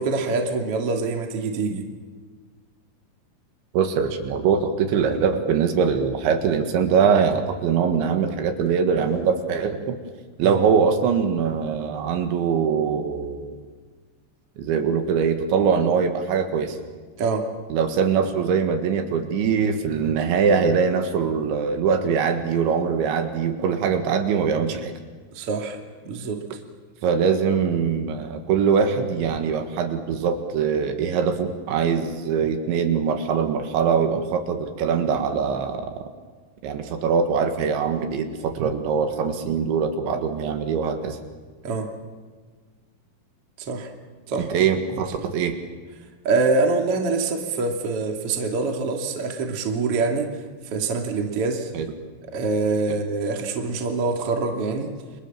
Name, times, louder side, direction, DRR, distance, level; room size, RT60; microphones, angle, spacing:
voice 1, 0.0-1.9 10.4-10.6 17.2-17.5 25.3-25.8 26.0-26.4 41.6-41.9 43.7-43.9 44.3-44.5 44.9-45.1 46.2-50.4 50.7-51.7 52.3-54.9, right 3 dB, 35° right, 3 dB, 2.7 m, -25 dB
voice 2, 3.7-10.0 10.4-13.5 14.6-16.8 17.7-24.9 27.0-36.0 36.6-41.2 44.4-45.6 51.7-51.9, right 6 dB, 70° right, 6 dB, 3.9 m, -22 dB
29.5 x 26.0 x 7.4 m, 1.5 s
omnidirectional pair, 5.7 m